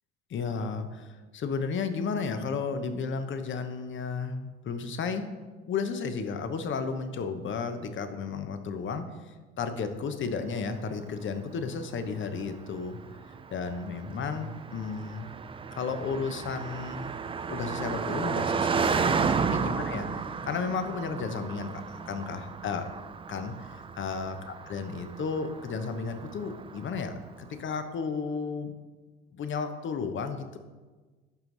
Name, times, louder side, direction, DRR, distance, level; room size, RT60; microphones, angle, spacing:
voice 1, 0.3-5.3 5.7-13.0 13.5-15.3 15.7-17.1 17.5-20.1 20.4-22.9 23.3-28.7 29.3-30.6, left 5 dB, 40° left, 8 dB, 1.0 m, -33 dB
Car passing by, 10.8-27.2, right 5 dB, 20° right, 0.4 m, -33 dB
11.5 x 4.6 x 4.0 m, 1.3 s
hypercardioid pair, 70°, 31 cm